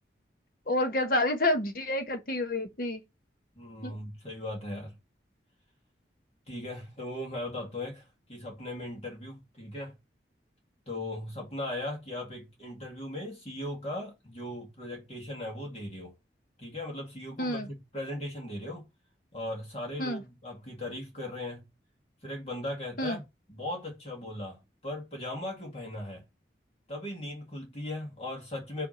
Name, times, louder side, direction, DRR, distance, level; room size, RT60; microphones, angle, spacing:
voice 1, 0.7-3.0 3.8-3.9 17.4-17.7 20.0-20.2 23.0-23.2, left 1 dB, 50° left, 1.1 m, -29 dB
voice 2, 3.6-5.0 6.5-9.9 10.9-16.2 16.6-18.8 19.3-21.7 22.2-23.2 23.5-26.2 26.9-28.9, left 1 dB, 35° left, 2.1 m, -38 dB
5.8 x 3.5 x 5.7 m
head